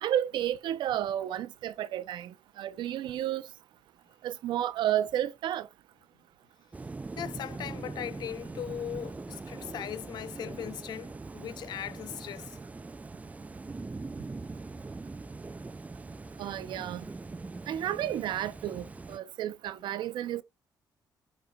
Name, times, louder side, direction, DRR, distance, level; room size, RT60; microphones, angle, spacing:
voice 1, 0.0-3.5 4.2-5.7 16.4-17.0 17.7-20.4, right 11 dB, 80° right, 0.6 m, -32 dB
sound 1, 6.7-19.2, right 3 dB, 20° right, 0.4 m, -42 dB
voice 2, 7.2-12.6, left 10 dB, 65° left, 0.4 m, -39 dB
11.5 x 4.3 x 2.3 m
cardioid pair, 85°, 8 cm